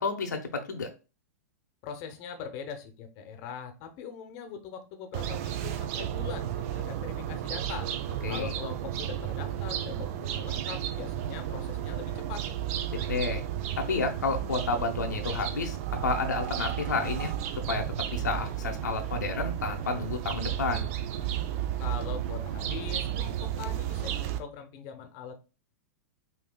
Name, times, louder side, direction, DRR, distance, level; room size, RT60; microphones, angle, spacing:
voice 1, 0.0-0.9 8.2-8.5 13.1-13.4 13.8-15.8 16.0-17.3 17.7-17.8 18.1-20.9, left 4 dB, 85° left, 4 dB, 0.8 m, -30 dB
voice 2, 1.8-7.9 8.3-12.4 21.8-25.3, left 6 dB, 45° left, 6 dB, 0.8 m, -41 dB
sound 1, 5.1-24.4, right 10 dB, 50° right, 0.5 m, -33 dB
5.3 x 2.7 x 2.2 m, 0.31 s
hypercardioid pair, 115°, 9 cm